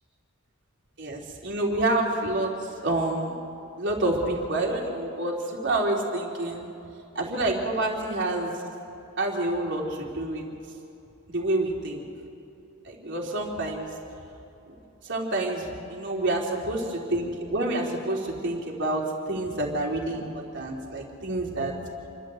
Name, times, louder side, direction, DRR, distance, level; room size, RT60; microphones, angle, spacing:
voice 1, 1.0-3.3 3.8-6.7 7.2-8.5 9.2-10.4 11.3-12.0 12.8-13.9 15.0-19.0 19.3-21.8, right 2 dB, 55° right, -1 dB, 3.5 m, -28 dB
29.0 x 12.5 x 7.8 m, 2.8 s
head